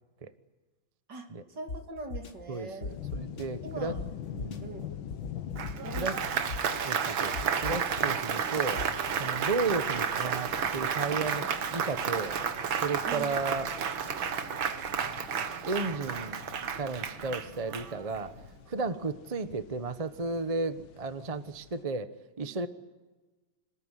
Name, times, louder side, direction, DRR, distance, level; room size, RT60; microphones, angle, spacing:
voice 1, 1.1-2.9 3.6-4.0 4.6-4.9 5.8-6.4 6.8-7.0 13.0-13.3, right 3 dB, 60° right, 4 dB, 3.3 m, -42 dB
sound 1, 1.7-1.8 2.1-2.3 2.8-3.4 3.9-4.0 4.4-4.6 5.1-6.0 6.5-6.8 7.3-8.0 8.8-9.1, left 3 dB, 40° left, 1.6 m, -37 dB
voice 2, 2.5-3.9 4.4-4.7 6.0-6.2 6.8-8.8 9.2-11.4 11.7-12.3 12.8-13.7 15.6-16.4 16.7-18.3 18.7-22.1 22.4-22.7, right 3 dB, 25° right, 11 dB, 0.8 m, -33 dB
sound 2, 2.9-21.8, left 10 dB, 80° left, 1.8 m, -46 dB
Applause, 5.6-18.3, right 7 dB, 80° right, 2.2 m, -32 dB
27.0 x 20.5 x 9.9 m, 1.2 s
omnidirectional pair, 2.2 m